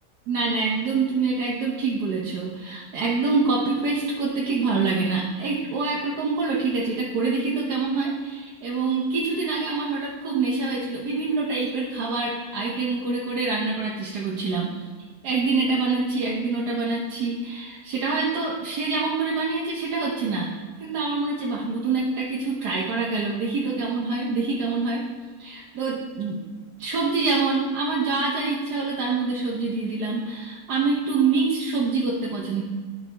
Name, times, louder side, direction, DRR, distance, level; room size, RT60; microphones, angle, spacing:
voice 1, 0.3-14.7 15.2-25.0 25.4-26.4 26.8-32.6, right 4 dB, 90° right, -4 dB, 1.5 m, -26 dB
11.0 x 5.1 x 3.3 m, 1.5 s
omnidirectional pair, 1.7 m